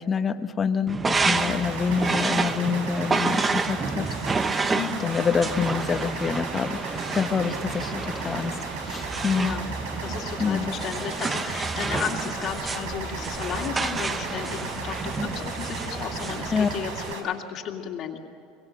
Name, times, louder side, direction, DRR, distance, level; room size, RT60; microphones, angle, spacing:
voice 1, 0.0-4.1 4.4-4.6 5.0-6.8 7.1-8.6 8.9-9.5 10.4-10.7 16.5-16.7, left 6 dB, 25° left, 9 dB, 1.1 m, -26 dB
sound 1, 0.9-17.1, right 4 dB, 20° right, 0.9 m, -29 dB
sound 2, 1.2-17.2, right 4 dB, 85° right, 4.9 m, -36 dB
voice 2, 1.3-1.7 4.7-5.1 9.3-9.7 10.0-18.2, left 8 dB, 45° left, 1 dB, 2.3 m, -34 dB
24.0 x 23.0 x 7.5 m, 2.5 s
supercardioid pair, 125°, 0 cm